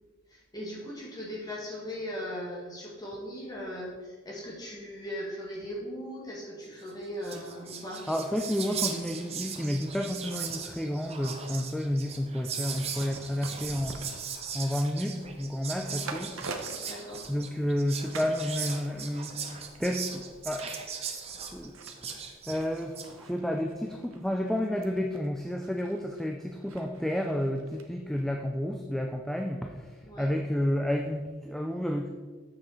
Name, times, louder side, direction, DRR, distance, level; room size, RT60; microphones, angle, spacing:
voice 1, 0.3-8.0 15.8-16.1 16.8-17.3 30.0-30.3, equal, 20° left, -5 dB, 2.0 m, -39 dB
Whispering, 6.9-7.0 7.2-23.1, right 6 dB, 30° right, 0.7 m, -39 dB
voice 2, 8.1-14.2 14.5-16.4 17.3-20.7 21.3-21.8 22.5-32.1, left 1 dB, ahead, 3 dB, 0.3 m, -31 dB
sound 1, 12.6-17.8 18.1-18.4 18.7-27.9 28.2-28.3, right 3 dB, 90° right, 0.9 m, -46 dB
7.4 x 6.3 x 4.4 m, 1.4 s
head